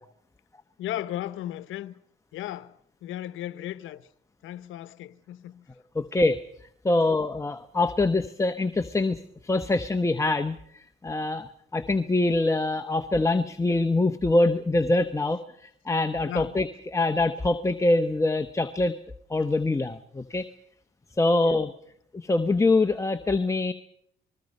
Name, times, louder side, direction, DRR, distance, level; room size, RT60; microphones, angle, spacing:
voice 1, 0.8-1.9 2.3-4.1 4.4-5.7 16.3-16.6 21.3-21.6, left 13 dB, 85° left, 0.9 m, -36 dB
voice 2, 5.9-6.4 6.8-18.9 19.3-20.5 21.2-21.7 22.1-23.7, left 2 dB, 15° left, 0.9 m, -24 dB
27.5 x 21.0 x 5.4 m
cardioid pair, 90°, 20 cm